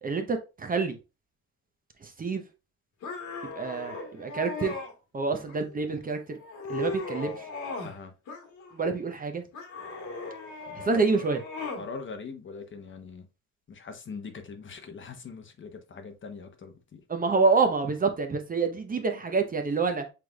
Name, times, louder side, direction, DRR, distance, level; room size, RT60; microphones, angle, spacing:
voice 1, 0.0-1.0 2.0-2.4 3.5-4.8 5.1-6.4 6.7-7.5 8.7-9.4 10.8-11.4 17.1-20.0, right 4 dB, 25° right, 0.7 m, -27 dB
sound 1, 3.0-4.9 5.5-6.0 6.4-8.0 8.3-9.0 9.5-11.9, left 3 dB, 70° left, 1.5 m, -37 dB
voice 2, 11.8-13.2 13.7-17.0, left 4 dB, 40° left, 0.9 m, -42 dB
5.9 x 3.3 x 2.3 m
cardioid pair, 100°, 32 cm